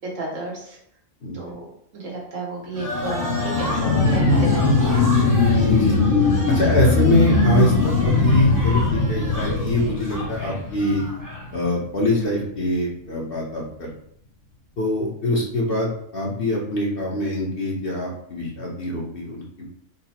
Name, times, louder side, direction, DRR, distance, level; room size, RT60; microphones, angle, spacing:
voice 1, 0.1-0.8 1.3-1.7 1.9-5.2 6.6-6.7, right 2 dB, 80° right, -3 dB, 1.5 m, -32 dB
sound 1, 2.7-11.5, equal, 20° right, 0.8 m, -32 dB
sound 2, 2.8-11.9 12.3-12.4, left 3 dB, 90° left, 1.0 m, -20 dB
voice 2, 5.7-6.0 6.5-11.0 11.5-13.9 14.8-19.7, left 1 dB, 50° left, -3 dB, 1.1 m, -23 dB
3.8 x 2.2 x 4.2 m, 0.69 s
omnidirectional pair, 1.3 m